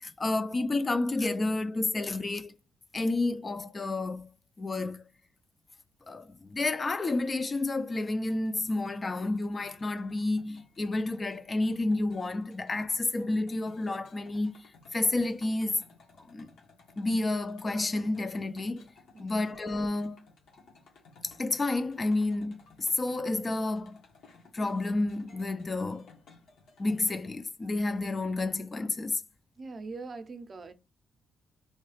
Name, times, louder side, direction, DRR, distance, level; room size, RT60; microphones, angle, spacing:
voice 1, 0.0-2.5 2.9-4.3 4.6-5.0 6.1-15.8 16.3-16.5 17.0-18.9 19.2-20.3 21.2-24.0 24.5-26.1 26.8-29.2, left 2 dB, 30° left, 0.4 m, -30 dB
sound 1, 8.3-27.1, left 4 dB, 75° left, 1.1 m, -58 dB
voice 2, 29.6-30.7, right 3 dB, 40° right, 0.6 m, -42 dB
3.1 x 2.3 x 3.2 m
cardioid pair, 90°, 0 cm